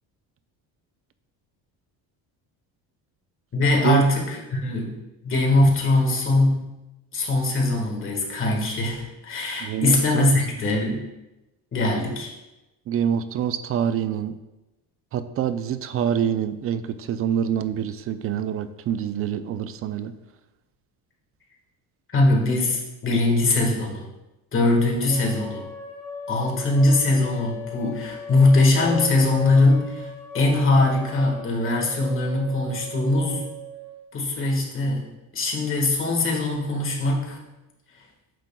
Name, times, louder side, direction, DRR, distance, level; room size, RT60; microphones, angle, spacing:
voice 1, 3.5-4.9 5.2-6.7 7.1-11.1 11.7-12.3 22.1-24.0 24.5-25.6 26.3-30.1 30.3-33.5 34.1-35.1 35.3-37.4, left 2 dB, 30° left, 0 dB, 1.5 m, -21 dB
voice 2, 9.6-10.3 12.9-14.4 15.1-20.1, right 9 dB, 35° right, 12 dB, 0.4 m, -26 dB
sound 1, 25.1-34.0, left 1 dB, 5° left, 2.0 m, -37 dB
9.1 x 6.0 x 2.2 m, 0.99 s
cardioid pair, 125°, 40 cm